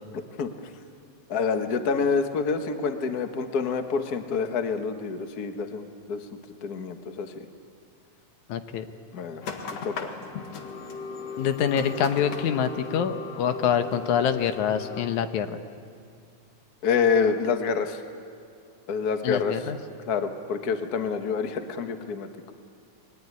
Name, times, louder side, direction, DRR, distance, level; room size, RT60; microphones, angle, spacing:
voice 1, 1.3-6.2 6.6-7.4 9.1-9.4 9.7-10.1 16.8-18.0 18.9-19.5 20.0-22.3, left 5 dB, 40° left, 7 dB, 1.5 m, -27 dB
voice 2, 8.5-8.8 11.4-15.6 19.2-19.8, left 8 dB, 80° left, 9 dB, 2.5 m, -25 dB
sound 1, 9.4-15.1, left 5 dB, 60° left, 2.7 m, -37 dB
27.5 x 21.5 x 9.7 m, 2.4 s
omnidirectional pair, 3.3 m